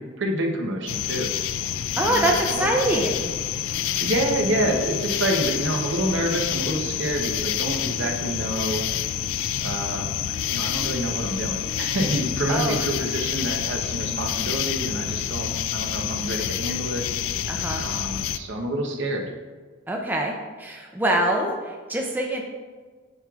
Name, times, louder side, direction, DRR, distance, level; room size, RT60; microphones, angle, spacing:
voice 1, 0.0-1.4 2.0-2.7 4.0-8.9 9.6-10.1 10.5-17.1 17.8-19.3, right 1 dB, 60° right, 2 dB, 0.8 m, -27 dB
sound 1, 0.9-18.4, left 10 dB, 75° left, 0.3 m, -28 dB
voice 2, 2.0-3.3 12.5-12.8 17.5-17.8 19.9-22.4, right 1 dB, 10° right, 0 dB, 0.5 m, -24 dB
9.6 x 4.7 x 2.4 m, 1.5 s
head